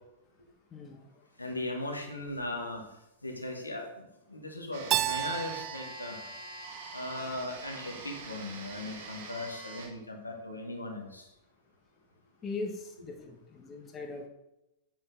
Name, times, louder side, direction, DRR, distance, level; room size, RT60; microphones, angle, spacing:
voice 1, 1.4-2.8 3.2-6.2 6.9-11.3, left 2 dB, 85° left, 1 dB, 1.5 m, -38 dB
sound 1, 4.7-9.9, right 3 dB, 55° right, 1.7 m, -45 dB
Keyboard (musical), 4.9-7.7, right 13 dB, 35° right, 0.3 m, -34 dB
voice 2, 12.4-14.3, left 3 dB, 25° left, 3 dB, 1.2 m, -39 dB
7.7 x 7.1 x 3.8 m, 0.90 s
figure-of-eight pair, 95°, 0 cm